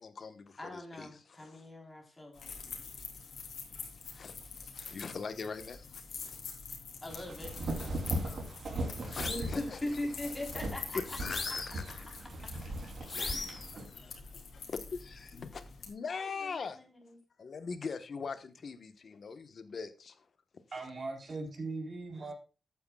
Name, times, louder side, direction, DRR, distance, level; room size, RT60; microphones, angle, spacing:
voice 1, 0.0-1.6 4.1-4.3 4.8-6.4 8.2-8.4 8.8-9.8 10.9-12.1 12.4-13.4 13.9-14.1 14.9-16.8 17.4-20.2 22.1-22.3, left 5 dB, 50° left, 1.2 m, -42 dB
voice 2, 0.6-2.5 7.0-7.5 9.2-11.2 16.1-17.2, left 1 dB, 15° left, 3.8 m, -40 dB
sound 1, 2.3-15.9, left 5 dB, 75° left, 3.2 m, -46 dB
sound 2, 7.1-13.9, right 1 dB, 60° right, 3.3 m, -39 dB
sound 3, 9.1-9.6 11.1-11.9 13.1-13.7, left 3 dB, 35° left, 2.0 m, -38 dB
voice 3, 20.7-22.3, right 3 dB, 40° right, 3.9 m, -39 dB
13.5 x 9.5 x 2.3 m
wide cardioid pair, 155°, 0 cm